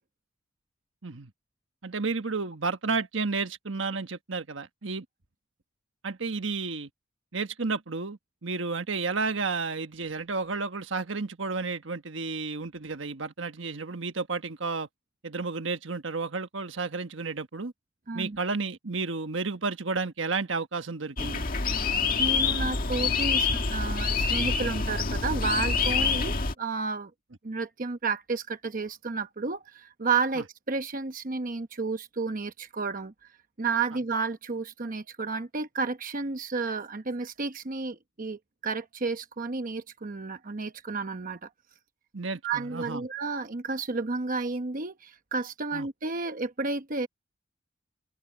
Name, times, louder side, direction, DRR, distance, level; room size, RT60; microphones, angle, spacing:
voice 1, 1.8-5.0 6.0-6.9 7.3-14.9 15.2-17.7 18.1-21.5 42.1-43.0 45.7-45.9, right 4 dB, 75° right, 1.4 m, -32 dB
sound 1, 21.2-26.5, left 4 dB, 50° left, 1.9 m, -26 dB
voice 2, 22.2-27.1 27.4-33.1 33.6-41.5 42.4-47.1, right 4 dB, 45° right, 0.9 m, -31 dB
head